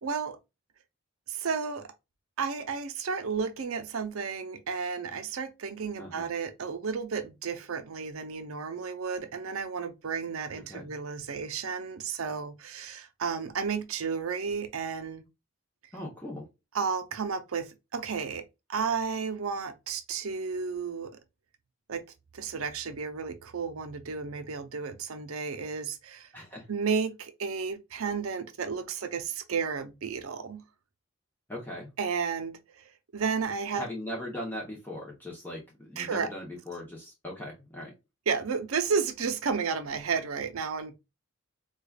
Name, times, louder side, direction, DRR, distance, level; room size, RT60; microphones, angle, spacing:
voice 1, 0.0-0.4 1.3-1.9 2.4-15.2 16.7-18.4 18.7-21.2 21.9-22.0 22.3-26.3 26.7-30.6 32.0-33.9 36.0-36.3 38.3-41.0, right 5 dB, 75° right, 0.5 m, -32 dB
voice 2, 15.9-16.5 26.3-26.7 31.5-31.9 33.7-37.9, left 1 dB, 10° left, 0.8 m, -39 dB
4.8 x 2.3 x 2.3 m
head